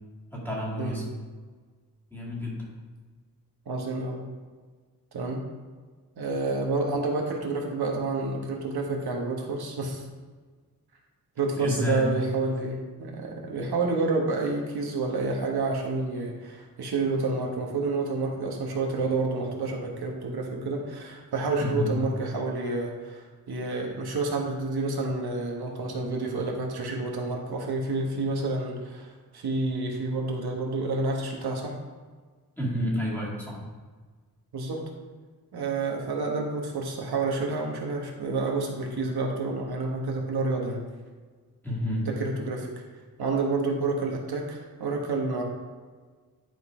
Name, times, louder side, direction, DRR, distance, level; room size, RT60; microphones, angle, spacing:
voice 1, 0.3-1.1 2.1-2.6 11.6-12.1 21.6-21.9 32.6-33.6 41.6-42.0, left 1 dB, 5° left, -6 dB, 2.1 m, -29 dB
voice 2, 3.7-4.2 5.1-5.4 6.2-10.0 11.4-31.8 34.5-34.8 35.5-40.8 42.1-42.7 43.2-45.4, right 3 dB, 85° right, 0 dB, 1.4 m, -29 dB
10.5 x 4.0 x 4.9 m, 1.4 s
wide cardioid pair, 175°, 37 cm